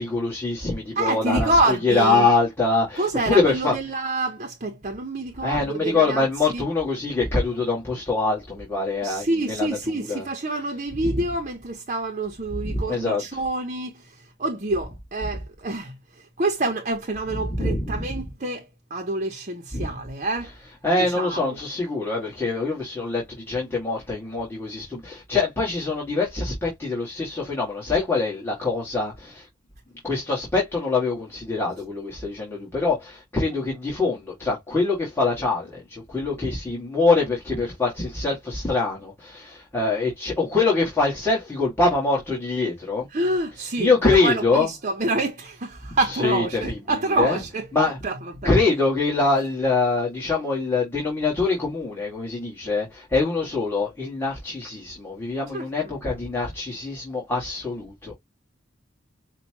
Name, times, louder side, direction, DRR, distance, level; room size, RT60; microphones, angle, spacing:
voice 1, 0.0-3.8 5.4-9.7 9.9-10.3 12.6-13.4 17.3-18.0 19.7-19.9 20.8-29.5 30.0-43.1 43.8-44.7 46.0-47.4 47.7-48.0 48.4-58.1, left 3 dB, 15° left, 1.9 m, -24 dB
voice 2, 1.0-2.3 3.0-6.3 6.5-6.7 9.0-20.5 21.0-21.6 43.1-47.7 48.0-48.2 48.4-48.5 55.5-55.7, right 2 dB, 40° right, 0.8 m, -27 dB
5.7 x 2.4 x 2.9 m
head